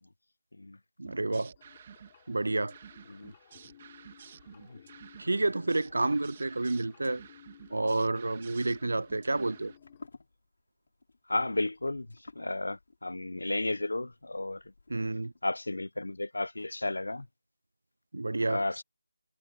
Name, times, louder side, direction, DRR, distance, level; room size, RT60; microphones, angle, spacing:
sound 1, 1.0-9.8, right 8 dB, 20° right, 2.0 m, -52 dB
voice 1, 1.0-1.5 2.3-2.7 5.2-7.2 7.7-9.7 14.9-15.3 18.1-18.8, right 2 dB, 70° right, 0.6 m, -30 dB
sound 2, 1.6-10.1, left 10 dB, 15° left, 4.3 m, -58 dB
sound 3, 8.4-15.4, left 3 dB, 50° left, 4.0 m, -56 dB
voice 2, 11.3-12.1 12.3-14.6 15.4-17.3 18.4-18.8, left 2 dB, 85° left, 1.0 m, -33 dB
figure-of-eight pair, 175°, 0 cm